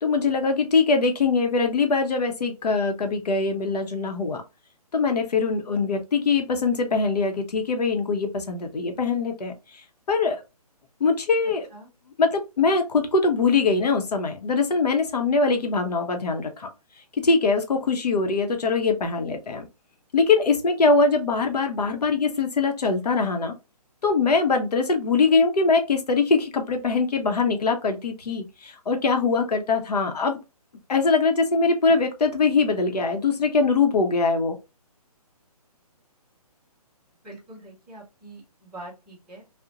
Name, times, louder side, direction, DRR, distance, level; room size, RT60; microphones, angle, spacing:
voice 1, 0.0-4.4 4.9-9.5 10.1-10.4 11.0-11.7 12.2-16.7 17.2-19.6 20.1-23.5 24.0-30.4 30.9-34.6, left 4 dB, 85° left, 0.7 m, -22 dB
voice 2, 37.2-39.4, right 2 dB, ahead, 0.4 m, -44 dB
2.4 x 2.1 x 2.7 m
hypercardioid pair, 160°, 20 cm